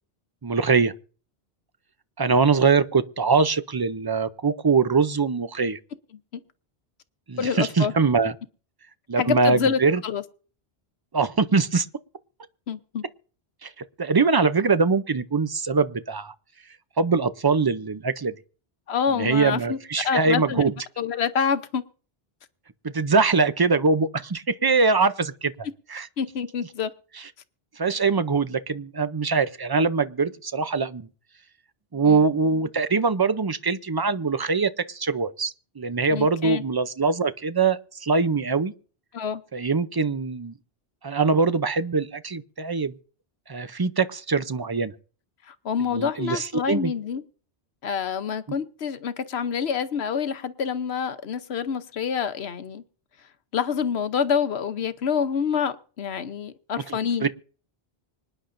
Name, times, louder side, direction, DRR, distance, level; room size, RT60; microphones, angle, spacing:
voice 1, 0.4-0.9 2.2-5.8 7.3-8.3 9.1-10.0 11.1-11.9 13.6-13.7 14.0-16.3 17.0-18.3 19.1-20.7 22.8-25.5 25.9-26.1 27.8-31.1 31.9-38.7 39.5-40.5 41.0-42.9 43.5-44.9 45.9-46.9 56.9-57.3, right 4 dB, 30° right, 0.5 m, -23 dB
voice 2, 7.4-7.9 9.2-10.2 12.7-13.0 18.9-19.8 20.0-20.6 21.0-21.8 26.2-26.9 32.0-32.2 36.1-36.6 39.1-39.4 45.5-47.2 47.8-52.8 53.5-57.3, left 7 dB, 80° left, 1.1 m, -27 dB
25.5 x 10.0 x 2.6 m
omnidirectional pair, 1.1 m